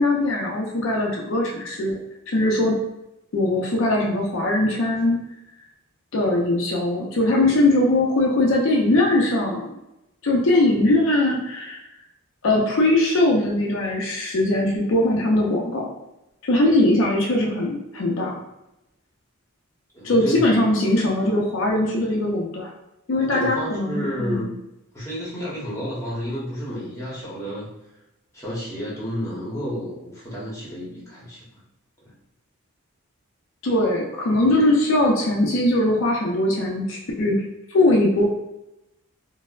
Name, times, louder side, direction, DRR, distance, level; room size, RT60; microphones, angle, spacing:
voice 1, 0.0-2.0 2.3-2.7 3.3-5.2 6.1-9.7 10.2-11.8 12.4-15.9 16.5-18.4 20.0-22.7 23.1-24.5 33.6-37.4 37.7-38.3, left 1 dB, 60° left, -2 dB, 0.5 m, -20 dB
voice 2, 19.9-20.4 23.3-24.5 24.9-27.7 28.3-31.5, equal, 15° left, -7 dB, 0.9 m, -31 dB
4.1 x 2.0 x 2.4 m, 0.90 s
head